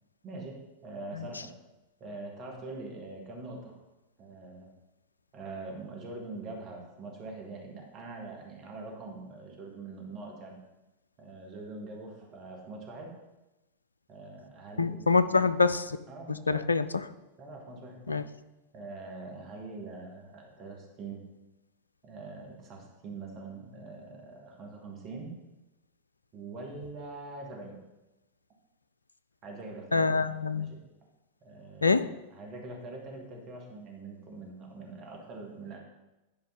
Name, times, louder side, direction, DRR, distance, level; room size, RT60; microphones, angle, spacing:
voice 1, 0.2-1.5 2.0-3.8 4.2-4.7 5.3-10.6 11.2-13.1 14.1-15.1 15.4-15.5 16.1-16.7 17.4-18.2 18.7-21.2 22.0-25.3 26.3-27.8 29.4-30.3 30.5-30.8 31.4-32.0 32.3-35.8, right 3 dB, 35° right, 1 dB, 2.2 m, -43 dB
voice 2, 14.8-15.9 16.3-17.0 18.1-18.2 29.9-30.7 31.8-32.1, left 4 dB, 80° left, 13 dB, 0.4 m, -25 dB
11.0 x 5.1 x 5.4 m, 1.0 s
figure-of-eight pair, 90°, 0 cm